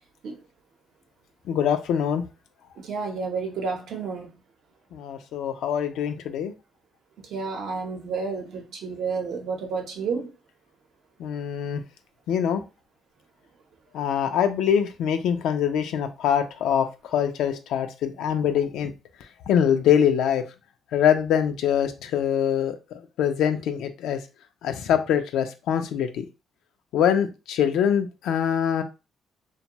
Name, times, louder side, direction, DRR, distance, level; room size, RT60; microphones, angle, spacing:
voice 1, 1.5-2.2 4.9-6.5 11.2-11.8 12.3-12.6 13.9-18.9 19.5-20.4 20.9-22.8 23.2-24.2 24.6-26.3 26.9-28.8, left 8 dB, 85° left, 0.3 m, -24 dB
voice 2, 2.8-4.3 7.3-10.3, right 5 dB, 75° right, 0.7 m, -30 dB
2.6 x 2.2 x 2.9 m
cardioid pair, 90°, 0 cm